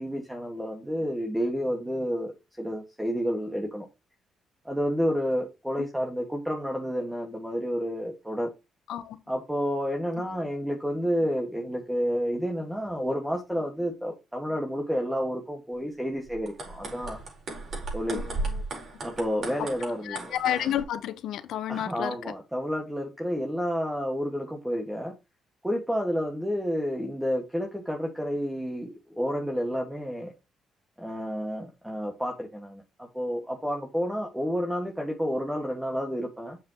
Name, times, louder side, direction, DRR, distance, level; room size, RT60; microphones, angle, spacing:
voice 1, 0.0-2.3 2.6-3.9 4.7-8.5 9.3-17.2 17.9-18.2 19.0-20.3 21.7-25.1 25.6-30.3 31.0-36.6, equal, 5° right, 1.7 m, -30 dB
sound 1, 16.3-20.8, right 3 dB, 55° right, 4.7 m, -36 dB
voice 2, 18.1-18.6 19.6-19.7 20.0-22.3, left 11 dB, 75° left, 1.0 m, -31 dB
7.3 x 7.2 x 2.9 m
cardioid pair, 90°, 0 cm